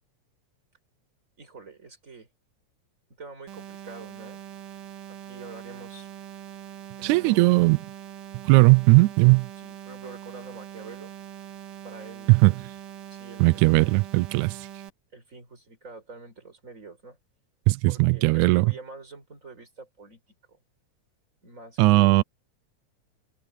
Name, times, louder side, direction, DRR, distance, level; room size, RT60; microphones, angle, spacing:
voice 1, 1.4-2.3 3.2-4.4 5.1-6.1 7.0-7.5 9.6-11.1 11.8-12.4 13.1-14.0 15.1-17.2 17.9-20.2 20.5-20.6 21.4-22.2, right 3 dB, 25° right, 5.2 m, -45 dB
sound 1, 3.5-14.9, right 10 dB, 55° right, 1.9 m, -42 dB
voice 2, 7.0-7.8 8.5-9.5 12.3-12.6 13.4-14.6 17.7-18.7 21.8-22.2, right 24 dB, 80° right, 1.9 m, -18 dB
omnidirectional pair, 3.5 m